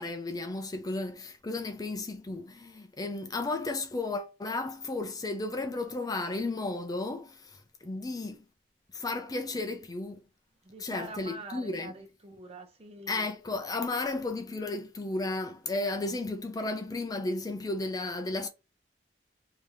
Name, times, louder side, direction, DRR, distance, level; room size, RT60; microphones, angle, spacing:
voice 1, 0.0-8.4 8.9-10.2 10.8-11.9 13.1-18.5, left 2 dB, 20° left, 0.4 m, -34 dB
voice 2, 10.6-13.3, right 2 dB, 35° right, 0.7 m, -45 dB
3.3 x 2.7 x 3.5 m
head